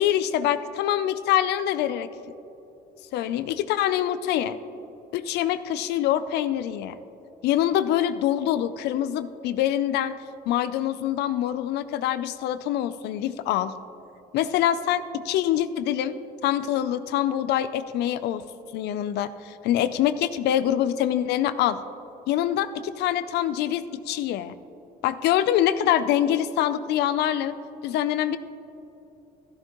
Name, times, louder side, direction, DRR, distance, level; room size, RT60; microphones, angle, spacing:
voice 1, 0.0-2.1 3.1-4.6 5.1-7.0 7.4-10.2 10.5-13.7 14.3-16.2 16.4-18.4 18.7-21.8 22.3-24.5 25.0-27.5 27.8-28.4, left 11 dB, 80° left, 13 dB, 0.5 m, -25 dB
13.5 x 12.5 x 3.0 m, 3.0 s
cardioid pair, 110°, 17 cm